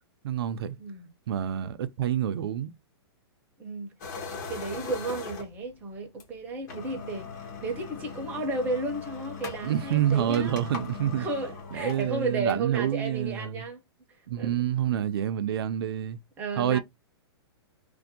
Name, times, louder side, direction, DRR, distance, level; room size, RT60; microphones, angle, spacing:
voice 1, 0.2-0.8 1.3-2.7 9.6-11.3 11.7-13.7 14.3-16.2 16.6-16.8, right 10 dB, 60° right, 0.4 m, -28 dB
voice 2, 3.6-3.9 4.5-7.3 7.6-10.6 11.2-13.8 14.4-14.5 16.4-16.8, right 3 dB, 10° right, 0.5 m, -33 dB
sound 1, 4.0-5.7 6.2-6.3 6.6-12.8, left 5 dB, 40° left, 0.8 m, -40 dB
2.5 x 2.1 x 2.6 m
hypercardioid pair, 160°, 14 cm